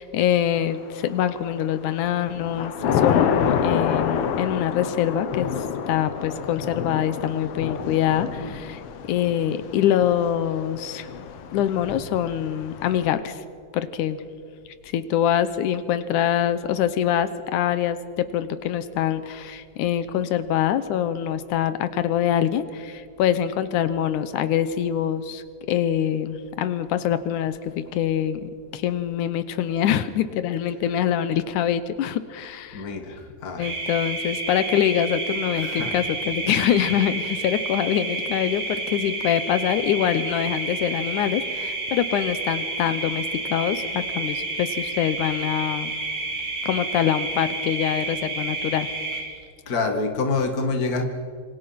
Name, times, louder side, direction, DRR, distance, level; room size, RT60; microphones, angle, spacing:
voice 1, 0.0-5.5 5.9-8.8 9.1-11.1 11.5-13.4 13.7-14.2 14.8-32.9 33.6-45.9 46.6-48.9, left 10 dB, 85° left, 13 dB, 2.4 m, -24 dB
Thunder / Rain, 1.0-1.5 2.0-13.1, left 7 dB, 60° left, 1.7 m, -28 dB
voice 2, 32.7-33.7 35.5-35.9 49.7-51.1, left 3 dB, 35° left, 5 dB, 2.2 m, -26 dB
sound 1, 33.6-49.2, right 3 dB, 80° right, 6.9 m, -30 dB
26.5 x 25.0 x 5.9 m, 2.1 s
omnidirectional pair, 3.5 m